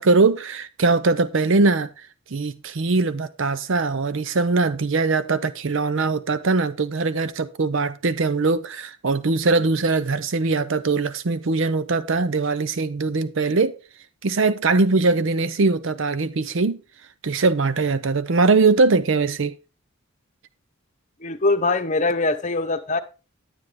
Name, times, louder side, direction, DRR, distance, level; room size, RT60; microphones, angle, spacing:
voice 1, 0.0-1.9 2.3-13.7 14.2-16.8 17.2-19.5, right 3 dB, 60° right, 0.6 m, -21 dB
voice 2, 21.2-23.0, left 3 dB, 35° left, 0.9 m, -22 dB
10.0 x 9.2 x 3.5 m
head